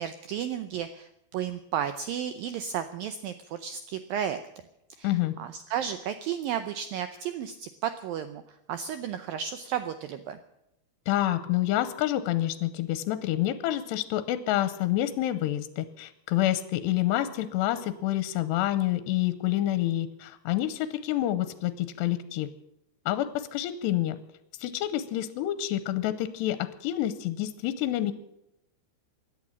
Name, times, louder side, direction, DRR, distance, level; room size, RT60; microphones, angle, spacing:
voice 1, 0.0-4.4 5.0-5.1 5.4-8.4 8.7-10.4, right 9 dB, 85° right, 10 dB, 2.0 m, -33 dB
voice 2, 5.0-5.3 11.1-22.5 23.1-24.2 24.6-28.1, left 14 dB, 80° left, 13 dB, 2.8 m, -28 dB
17.5 x 11.0 x 7.2 m, 0.85 s
omnidirectional pair, 5.1 m